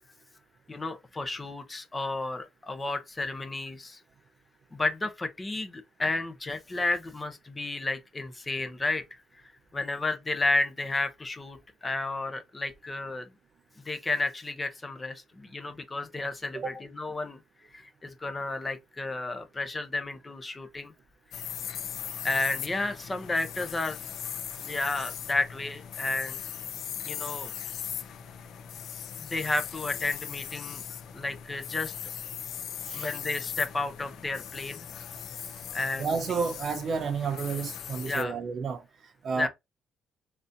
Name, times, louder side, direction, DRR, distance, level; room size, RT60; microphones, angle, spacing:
voice 1, 0.7-4.0 4.7-9.0 9.7-13.3 13.8-17.4 17.7-20.9 22.2-24.0 24.6-26.4 27.1-27.5 29.2-30.8 31.1-31.9 32.9-34.9 35.7-36.1 38.0-38.3 39.4-39.5, left 2 dB, 20° left, 0.8 m, -32 dB
sound 1, 21.3-38.2, left 9 dB, 65° left, 0.4 m, -39 dB
voice 2, 32.9-33.2 36.0-39.5, right 5 dB, 50° right, 0.6 m, -31 dB
3.9 x 2.7 x 2.5 m
cardioid pair, 115°, 0 cm